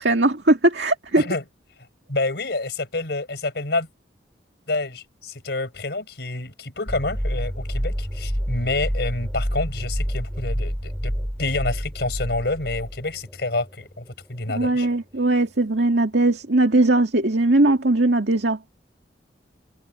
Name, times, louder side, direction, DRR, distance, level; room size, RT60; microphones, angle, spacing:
voice 1, 0.0-1.2 14.5-18.6, right 2 dB, 70° right, 2.2 m, -19 dB
voice 2, 2.1-3.9 4.7-11.1 11.4-14.9, left 2 dB, 65° left, 5.0 m, -28 dB
sound 1, 6.9-14.1, equal, ahead, 6.8 m, -28 dB
head